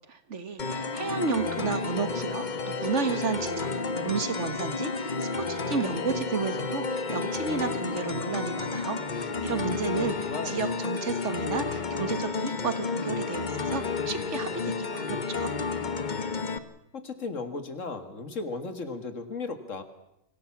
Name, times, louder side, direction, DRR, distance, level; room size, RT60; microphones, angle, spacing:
voice 1, 0.3-3.7 4.0-15.5, right 5 dB, 70° right, 10 dB, 1.9 m, -32 dB
sound 1, 0.6-16.6, left 4 dB, 40° left, 1.2 m, -31 dB
voice 2, 10.2-10.6 16.9-19.8, left 3 dB, 85° left, 9 dB, 2.4 m, -35 dB
25.0 x 17.0 x 7.3 m, 0.84 s
omnidirectional pair, 1.3 m